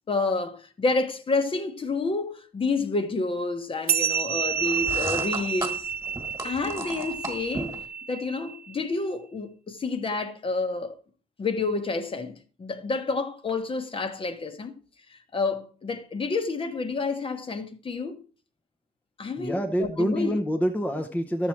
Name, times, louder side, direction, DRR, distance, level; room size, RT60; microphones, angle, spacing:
voice 1, 0.1-5.9 6.4-7.7 8.1-11.0 11.4-14.8 15.1-18.2 19.2-20.4, left 3 dB, 35° left, 1.0 m, -29 dB
sound 1, 3.9-8.7, right 7 dB, 70° right, 0.6 m, -29 dB
sound 2, 4.6-7.9, right 2 dB, 20° right, 1.6 m, -35 dB
voice 2, 19.4-21.5, equal, 10° left, 0.7 m, -26 dB
12.5 x 7.2 x 4.4 m
wide cardioid pair, 170°, 16 cm